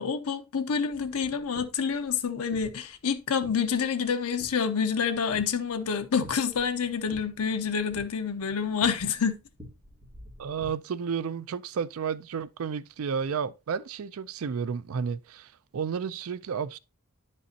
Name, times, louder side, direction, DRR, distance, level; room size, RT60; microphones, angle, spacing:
voice 1, 0.0-9.4, left 6 dB, 85° left, 0.6 m, -28 dB
sound 1, 0.9-10.7, left 1 dB, 25° right, 2.5 m, -51 dB
voice 2, 10.4-16.8, right 6 dB, 70° right, 0.4 m, -32 dB
10.0 x 5.4 x 2.7 m
head